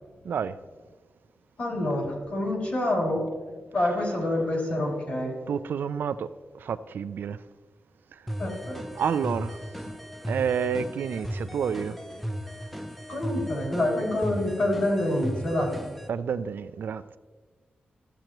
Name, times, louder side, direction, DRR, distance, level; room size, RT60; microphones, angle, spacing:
voice 1, 1.6-3.3 3.7-5.3 8.4-8.8 13.1-15.7, left 1 dB, 50° left, 2.6 m, -27 dB
voice 2, 5.5-6.3 6.6-7.4 9.0-9.6 10.3-12.0 16.1-17.2, right 7 dB, 75° right, 0.3 m, -29 dB
sound 1, 8.3-16.1, equal, ahead, 0.5 m, -36 dB
13.0 x 7.7 x 3.0 m
wide cardioid pair, 145°, 3 cm